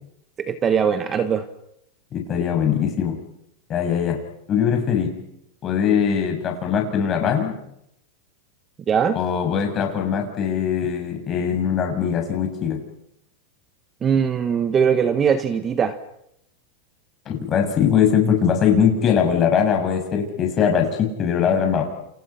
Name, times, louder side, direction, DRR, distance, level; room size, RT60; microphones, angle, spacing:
voice 1, 0.4-1.5 8.9-9.2 14.0-16.0, right 7 dB, 20° right, 10 dB, 1.3 m, -20 dB
voice 2, 2.1-3.2 3.7-4.2 4.5-5.2 5.6-7.6 9.1-12.8 17.3-21.8, left 7 dB, 25° left, 3 dB, 6.3 m, -21 dB
29.5 x 29.0 x 5.7 m, 0.79 s
supercardioid pair, 165°, 0 cm